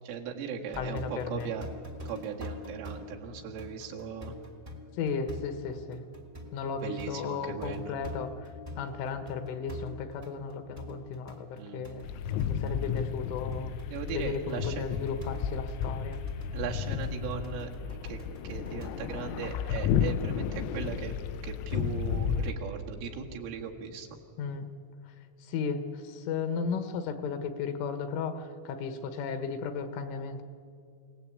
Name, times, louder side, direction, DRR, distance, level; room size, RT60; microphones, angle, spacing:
voice 1, 0.0-1.7 2.1-4.4 6.8-8.0 11.6-11.8 13.9-14.8 16.5-21.2 21.4-24.2, right 6 dB, 75° right, 0 dB, 4.4 m, -38 dB
sound 1, 0.7-19.0, left 1 dB, 20° right, 1.2 m, -45 dB
voice 2, 0.8-1.5 4.9-6.0 6.5-8.5 8.8-12.1 12.5-13.7 14.1-16.2 24.4-24.7 25.1-30.4, left 5 dB, 75° left, 8 dB, 3.6 m, -35 dB
sound 2, 12.0-22.6, left 8 dB, 90° left, 3.5 m, -32 dB
29.0 x 18.5 x 8.6 m, 2.4 s
omnidirectional pair, 5.9 m